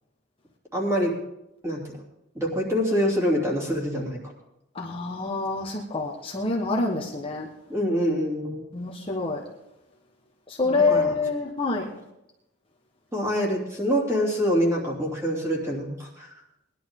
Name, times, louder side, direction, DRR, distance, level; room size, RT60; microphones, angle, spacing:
voice 1, 0.7-1.1 1.6-1.9 2.3-4.2 7.7-8.6 10.6-11.1 13.1-16.3, equal, 15° right, -3 dB, 2.9 m, -25 dB
voice 2, 4.7-7.5 8.7-9.4 10.5-11.9, left 3 dB, 25° left, -2 dB, 1.3 m, -26 dB
19.5 x 11.0 x 3.8 m, 0.86 s
head